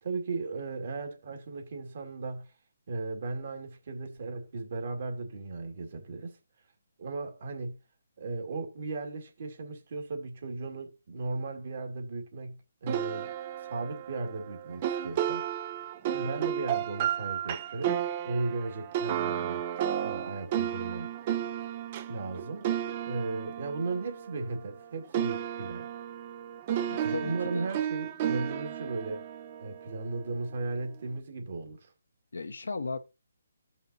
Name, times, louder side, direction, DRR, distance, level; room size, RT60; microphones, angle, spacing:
voice 1, 0.0-2.5 2.9-6.4 7.0-7.8 8.2-13.3 13.7-15.5 16.1-17.9 18.3-19.6 20.0-21.1 22.1-22.8 23.1-25.9 27.0-29.3 29.6-31.9, right 3 dB, 50° right, 2.0 m, -36 dB
sound 1, 12.9-24.8 25.1-30.4, right 10 dB, 30° right, 0.5 m, -33 dB
voice 2, 26.9-27.7 32.3-33.0, left 4 dB, 85° left, 1.2 m, -36 dB
15.5 x 5.6 x 2.7 m
hypercardioid pair, 160°, 0 cm